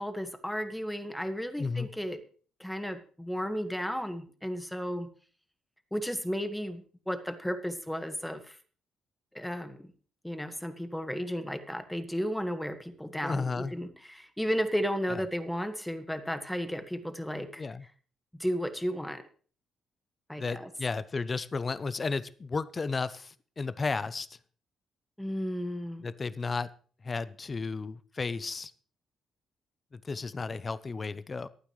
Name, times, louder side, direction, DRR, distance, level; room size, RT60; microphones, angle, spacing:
voice 1, 0.0-2.2 2.6-5.1 5.9-8.6 9.3-9.9 10.2-17.6 18.3-19.2 20.3-20.7 25.2-26.0, equal, 5° left, 8 dB, 1.7 m, -34 dB
voice 2, 13.2-13.7 15.1-15.2 17.6-17.8 20.4-24.3 26.0-26.7 27.0-28.7 29.9-31.5, left 4 dB, 30° left, 15 dB, 0.7 m, -33 dB
24.0 x 9.2 x 3.2 m, 0.41 s
cardioid pair, 90°, 0 cm